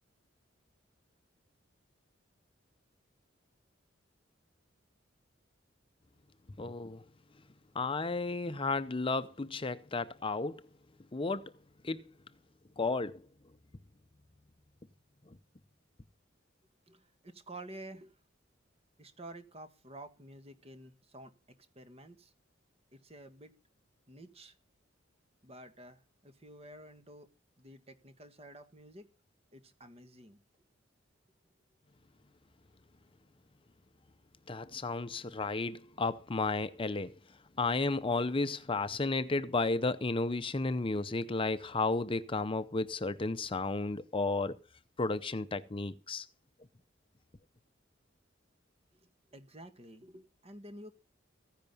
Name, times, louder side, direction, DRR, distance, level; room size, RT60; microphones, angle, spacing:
voice 1, 6.6-7.0 7.7-10.6 11.1-11.5 11.8-12.0 12.8-13.2 34.5-37.1 37.6-44.6 45.0-46.3, left 3 dB, 30° left, 0.6 m, -33 dB
voice 2, 16.9-18.2 19.0-21.3 21.8-22.3 22.9-23.5 24.1-24.6 25.4-27.3 27.6-29.1 29.5-30.4 48.9-50.9, right 1 dB, 35° right, 1.8 m, -51 dB
15.0 x 10.5 x 5.4 m
head